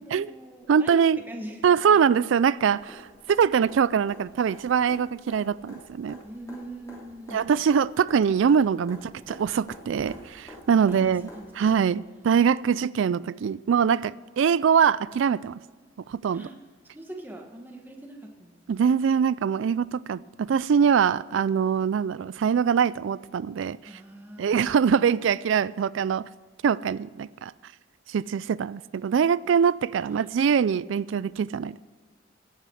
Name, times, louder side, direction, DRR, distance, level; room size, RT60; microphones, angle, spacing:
voice 1, 0.0-1.9 6.2-7.4 9.2-9.3 10.9-11.5 16.3-18.8 23.9-24.8, right 1 dB, 10° right, 1.2 m, -42 dB
voice 2, 0.7-1.2 1.6-3.0 3.3-6.2 7.3-11.3 11.6-15.6 16.1-16.5 18.7-20.2 20.5-23.8 24.4-26.2 26.6-27.5 28.1-31.8, right 7 dB, 75° right, 0.3 m, -23 dB
sound 1, 2.6-11.7 13.7-13.8, left 1 dB, 15° left, 3.1 m, -48 dB
17.0 x 6.6 x 6.3 m
head